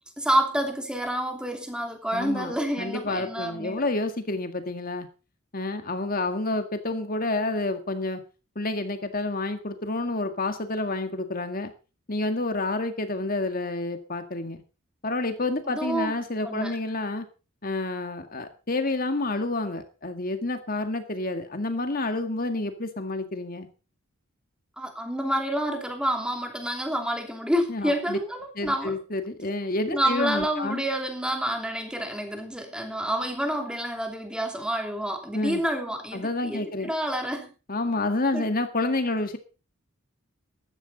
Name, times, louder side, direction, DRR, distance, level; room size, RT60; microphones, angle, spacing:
voice 1, 0.2-3.9 15.7-16.1 16.4-16.7 24.8-28.9 29.9-37.5 38.3-38.4, right 1 dB, 5° right, 3 dB, 2.8 m, -28 dB
voice 2, 2.1-5.1 5.5-8.2 8.6-11.7 12.1-14.6 15.0-17.3 17.6-23.7 27.7-28.2 28.6-30.8 35.3-35.6 36.1-36.9 37.7-39.4, left 2 dB, 40° left, 7 dB, 1.9 m, -29 dB
14.5 x 12.0 x 4.2 m, 0.34 s
head